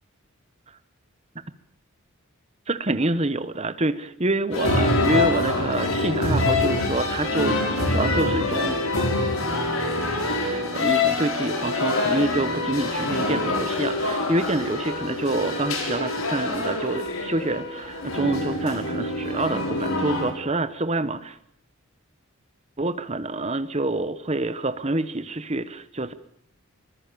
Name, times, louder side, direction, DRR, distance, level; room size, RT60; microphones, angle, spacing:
voice 1, 2.7-8.8 10.4-21.4 22.8-26.1, right 2 dB, 30° right, 12 dB, 1.2 m, -27 dB
sound 1, 4.5-20.3, left 2 dB, 75° left, 5.8 m, -25 dB
24.5 x 24.0 x 6.9 m, 0.66 s
head